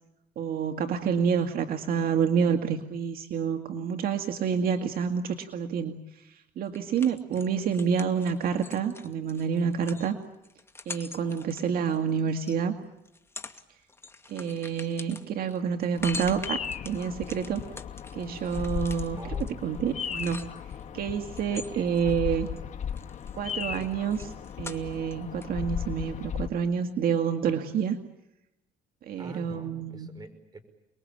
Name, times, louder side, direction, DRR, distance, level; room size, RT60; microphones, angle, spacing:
voice 1, 0.4-6.0 6.3-10.2 10.9-12.8 14.3-17.6 18.1-19.2 19.6-20.5 20.9-22.5 23.4-28.0 29.1-30.1, right 7 dB, 60° right, 6 dB, 2.1 m, -28 dB
sound 1, 6.7-12.6 13.1-13.6 13.9-20.8 21.3-22.6 22.9-25.1 25.4-25.5, left 3 dB, 15° left, 2.3 m, -44 dB
Bird vocalization bird call bird song, 16.0-26.5, left 8 dB, 45° left, 1.7 m, -36 dB
voice 2, 19.2-19.7 21.5-21.9 29.2-30.6, right 2 dB, 25° right, 10 dB, 5.6 m, -45 dB
29.5 x 21.5 x 8.8 m, 0.90 s
cardioid pair, 110°, 17 cm